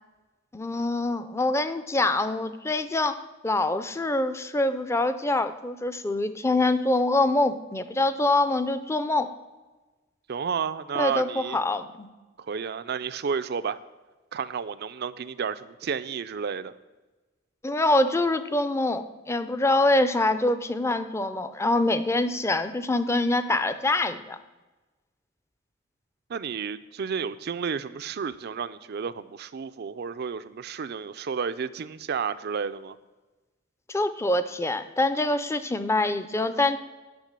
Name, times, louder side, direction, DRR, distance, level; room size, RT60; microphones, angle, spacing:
voice 1, 0.5-9.3 11.0-12.1 17.6-24.4 33.9-36.8, left 2 dB, 15° left, 11 dB, 0.5 m, -25 dB
voice 2, 10.3-11.6 12.4-13.8 14.3-16.7 26.3-33.0, right 6 dB, 55° right, 13 dB, 0.4 m, -31 dB
10.5 x 6.2 x 6.6 m, 1.2 s
head